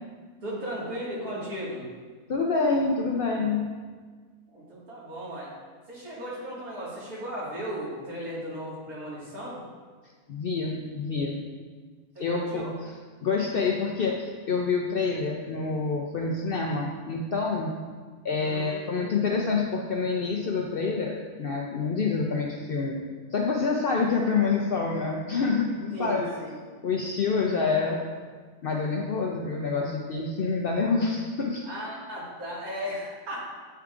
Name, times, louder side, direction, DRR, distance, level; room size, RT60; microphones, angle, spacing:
voice 1, 0.4-1.9 4.5-5.5 5.9-9.6 12.2-12.7 18.4-19.2 25.9-26.6 31.7-33.5, equal, 75° right, -7 dB, 2.4 m, -36 dB
voice 2, 2.3-3.7 10.3-11.4 12.2-12.9 13.2-17.7 18.2-23.0 23.3-26.2 26.8-28.0 28.6-31.6, left 4 dB, 75° left, -1 dB, 0.5 m, -27 dB
9.0 x 4.7 x 2.4 m, 1.5 s
omnidirectional pair, 1.6 m